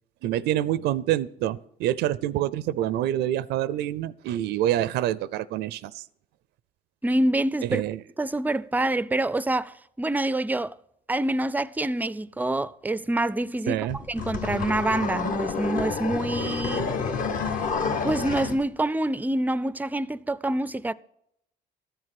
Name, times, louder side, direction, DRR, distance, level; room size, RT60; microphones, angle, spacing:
voice 1, 0.2-6.0 7.6-8.0 13.7-14.0, right 12 dB, 80° right, 0.5 m, -26 dB
voice 2, 7.0-7.8 8.2-10.8 11.1-16.9 18.0-20.9, right 1 dB, 10° right, 0.4 m, -26 dB
sound 1, 13.9-18.6, left 5 dB, 55° left, 1.6 m, -29 dB
13.5 x 7.9 x 5.9 m
cardioid pair, 110°, 17 cm